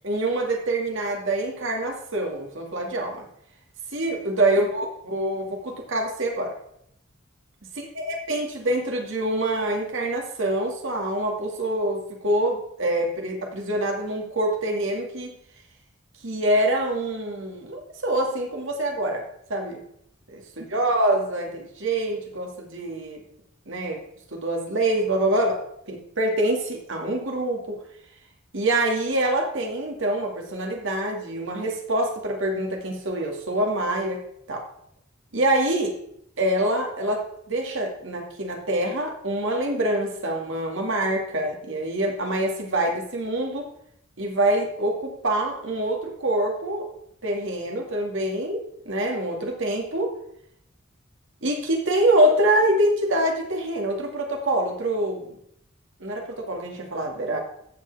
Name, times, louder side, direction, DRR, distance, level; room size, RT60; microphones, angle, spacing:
voice 1, 0.0-3.3 3.9-6.5 8.0-15.3 16.2-19.2 19.5-19.8 20.3-23.2 23.7-24.0 24.3-25.6 25.9-27.8 28.5-34.2 34.5-34.6 35.3-36.0 36.4-43.7 44.2-46.9 47.2-50.1 51.4-55.3 56.0-57.4, right 1 dB, 65° right, 2 dB, 2.2 m, -25 dB
15.0 x 7.6 x 3.5 m, 0.72 s
head